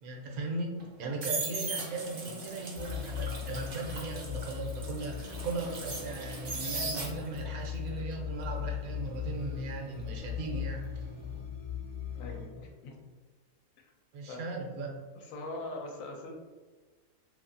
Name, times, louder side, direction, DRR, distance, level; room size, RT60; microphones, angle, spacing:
voice 1, 0.0-11.1 14.1-14.9, right 3 dB, 80° right, 0 dB, 1.1 m, -38 dB
sound 1, 0.8-7.5 7.9-10.8 11.0-11.4, right 3 dB, 55° right, 0.6 m, -39 dB
sound 2, 2.7-12.5, left 9 dB, 50° left, 1.0 m, -39 dB
voice 2, 12.1-13.0 14.3-14.4 15.2-16.3, left 2 dB, 75° left, 1 dB, 0.9 m, -42 dB
2.7 x 2.7 x 2.5 m, 1.3 s
omnidirectional pair, 1.5 m